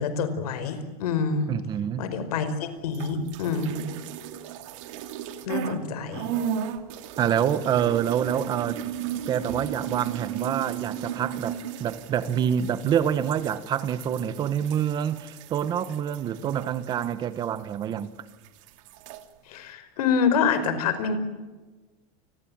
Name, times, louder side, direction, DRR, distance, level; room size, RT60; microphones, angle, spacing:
voice 1, 0.0-1.5 2.0-3.9 5.4-6.3 19.5-21.2, left 5 dB, 90° left, 5.3 m, -26 dB
voice 2, 1.5-2.1 7.2-8.8 9.3-18.1, right 9 dB, 20° right, 1.2 m, -26 dB
sound 1, 2.9-5.8 6.1-18.0 18.3-19.2, right 9 dB, 55° right, 2.5 m, -36 dB
29.5 x 22.0 x 8.9 m
supercardioid pair, 175°, 19 cm